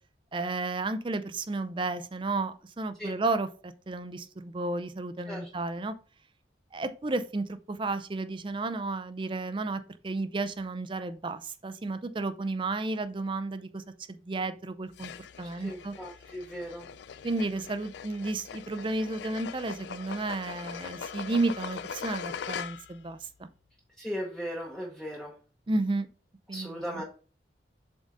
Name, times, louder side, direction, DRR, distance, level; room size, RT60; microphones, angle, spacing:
voice 1, 0.3-5.9 6.7-15.1 15.4-15.9 17.2-23.5 25.7-26.1 26.5-27.0, right 2 dB, 25° right, 0.4 m, -32 dB
sound 1, 14.9-23.0, left 7 dB, 70° left, 0.4 m, -41 dB
voice 2, 15.4-16.9 24.0-25.3 26.5-27.0, equal, 5° left, 0.9 m, -37 dB
7.2 x 3.9 x 3.7 m
head